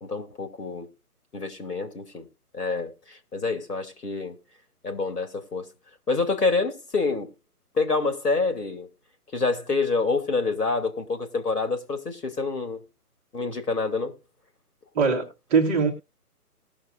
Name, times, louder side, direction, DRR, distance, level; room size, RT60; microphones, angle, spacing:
voice 1, 0.0-0.9 1.3-2.3 2.5-4.4 4.8-5.7 6.1-7.3 7.7-8.9 9.3-12.8 13.3-14.1, left 4 dB, 80° left, 2.6 m, -27 dB
voice 2, 14.9-15.9, right 5 dB, 10° right, 0.8 m, -22 dB
19.0 x 6.6 x 2.6 m
figure-of-eight pair, 150°, 46 cm